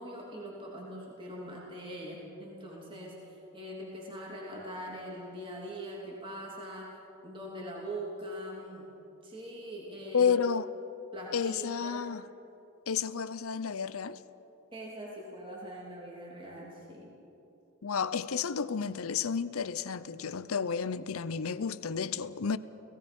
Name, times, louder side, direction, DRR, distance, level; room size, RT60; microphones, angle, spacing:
voice 1, 0.0-8.9 9.2-10.3 11.1-12.0 14.7-17.1, equal, 25° right, 3.1 m, -42 dB
voice 2, 10.1-10.7 11.3-12.2 12.9-14.2 17.8-22.6, left 6 dB, 85° left, 0.7 m, -31 dB
30.0 x 18.0 x 5.4 m
head